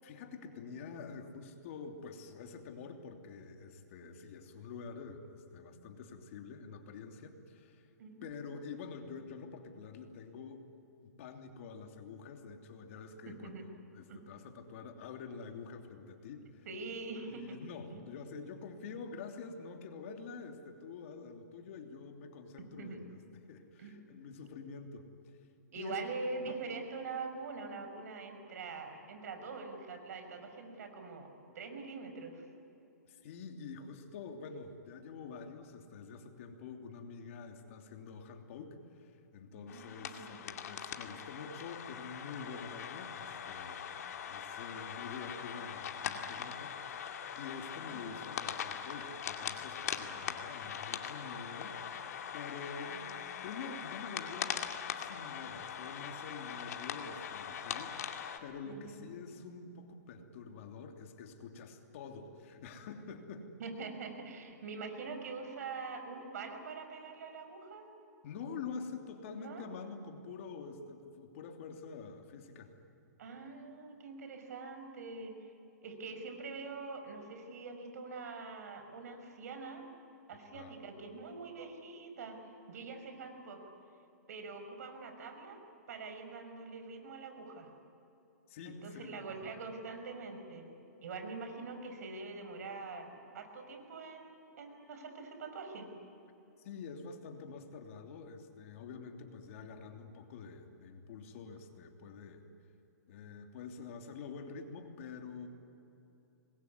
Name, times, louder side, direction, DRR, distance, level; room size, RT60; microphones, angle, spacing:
voice 1, 0.0-7.9 8.2-10.6 11.0-16.7 17.3-25.3 25.8-26.0 26.5-26.6 33.1-53.0 53.4-63.5 68.2-72.7 80.5-80.8 88.5-89.5 96.6-102.4 103.1-105.5, left 5 dB, 50° left, 4 dB, 3.0 m, -47 dB
voice 2, 8.0-8.3 13.3-13.7 14.1-14.2 16.7-17.6 17.9-18.0 22.6-23.0 23.8-24.0 25.7-31.3 31.5-32.4 39.5-40.4 47.9-48.2 52.9-53.2 58.6-59.1 63.6-67.9 69.4-69.7 73.2-75.5 75.8-79.8 80.3-82.4 82.7-83.6 84.3-85.6 85.9-87.7 88.7-90.7 91.0-95.9, right 4 dB, 65° right, 6 dB, 5.7 m, -44 dB
sound 1, 39.7-58.4, left 8 dB, 65° left, 2.4 m, -41 dB
26.0 x 21.5 x 9.7 m, 2.9 s
hypercardioid pair, 150°, 9 cm